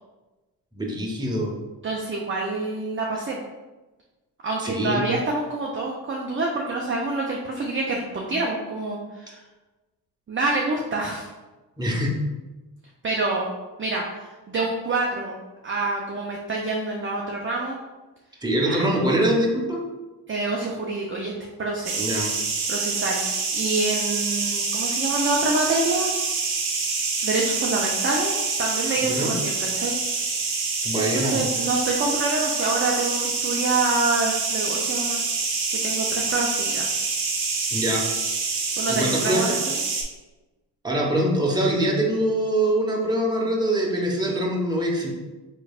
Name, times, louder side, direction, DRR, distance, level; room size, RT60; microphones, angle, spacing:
voice 1, 0.7-1.5 4.6-5.0 11.8-12.2 18.4-19.8 22.0-22.3 29.0-29.4 30.8-31.4 37.7-38.0 38.9-39.5 40.8-45.1, right 1 dB, 10° right, -1 dB, 1.0 m, -23 dB
voice 2, 1.8-3.4 4.4-9.4 10.3-11.3 13.0-13.5 13.8-15.4 15.6-17.8 18.7-18.8 20.3-21.3 21.6-21.9 22.7-26.1 27.2-30.0 30.9-35.2 35.7-36.9 38.8-39.8, right 3 dB, 25° right, -1 dB, 0.6 m, -27 dB
sound 1, 21.8-40.0, right 4 dB, 55° right, 0.9 m, -26 dB
4.0 x 3.2 x 2.4 m, 1.1 s
supercardioid pair, 55°, 46 cm